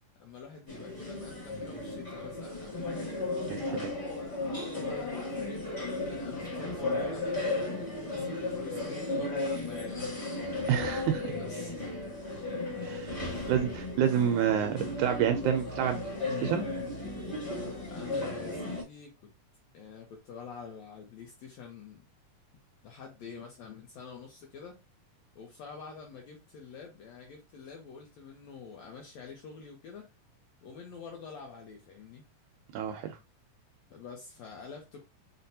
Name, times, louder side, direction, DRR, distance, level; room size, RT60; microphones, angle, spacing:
voice 1, 0.2-3.1 3.7-5.7 6.0-10.1 11.4-11.9 13.3-13.5 17.9-19.3 19.7-22.0 22.8-24.8 25.3-30.1 30.6-32.2 33.1-33.2 33.9-35.0, left 5 dB, 75° left, 1.6 m, -47 dB
sound 1, 0.7-18.8, left 2 dB, 25° left, 0.8 m, -35 dB
voice 2, 3.5-4.0 10.7-11.3 12.8-13.1 13.5-16.7 32.7-33.2, right 9 dB, 80° right, 1.8 m, -29 dB
5.8 x 2.1 x 2.6 m
omnidirectional pair, 3.7 m